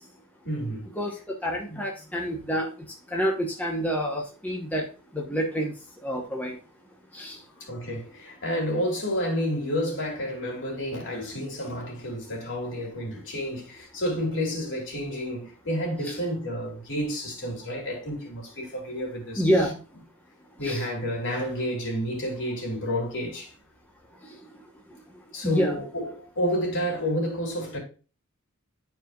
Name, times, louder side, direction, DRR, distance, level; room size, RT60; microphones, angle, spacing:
voice 1, 0.4-0.9 1.7-1.8 7.6-19.5 20.6-23.5 25.3-27.8, equal, 60° left, 3.4 m, -30 dB
voice 2, 1.0-2.7 3.1-4.8 5.1-5.7 6.0-6.6 7.1-7.4 16.0-16.1 19.4-19.8 20.6-20.8 24.3-24.4 25.4-25.8, equal, 5° left, 1.2 m, -27 dB
12.0 x 4.8 x 2.5 m
head